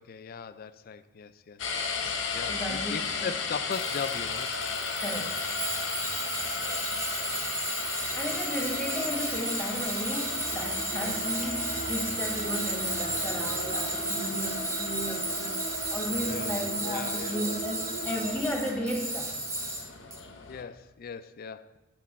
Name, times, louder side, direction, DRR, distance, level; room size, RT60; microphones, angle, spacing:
voice 1, 0.0-4.5 6.6-6.9 8.1-8.4 11.0-11.1 16.2-17.4 20.5-21.8, left 6 dB, 50° left, 13 dB, 0.4 m, -39 dB
sound 1, 1.6-20.6, left 5 dB, 85° left, 0.8 m, -36 dB
voice 2, 2.5-3.3 5.0-5.4 8.1-19.3, equal, 5° left, 1 dB, 1.3 m, -34 dB
Tools, 3.7-20.2, right 2 dB, 15° right, 0.8 m, -34 dB
sound 2, 10.2-18.4, right 2 dB, 60° right, 1.1 m, -40 dB
8.4 x 5.5 x 4.2 m, 1.1 s
head